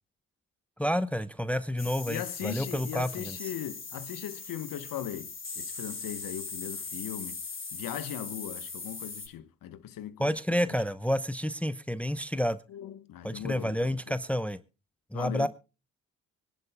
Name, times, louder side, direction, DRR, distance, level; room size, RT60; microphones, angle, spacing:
voice 1, 0.8-3.4 10.2-12.6 13.2-14.6 15.1-15.5, equal, 5° left, 0.9 m, -29 dB
sound 1, 1.8-9.3, left 4 dB, 30° left, 5.2 m, -40 dB
voice 2, 2.1-7.4 7.7-10.3 10.7-10.8 12.7-14.2 15.1-15.5, left 11 dB, 55° left, 1.4 m, -39 dB
25.0 x 11.0 x 2.3 m
hypercardioid pair, 50°, 39 cm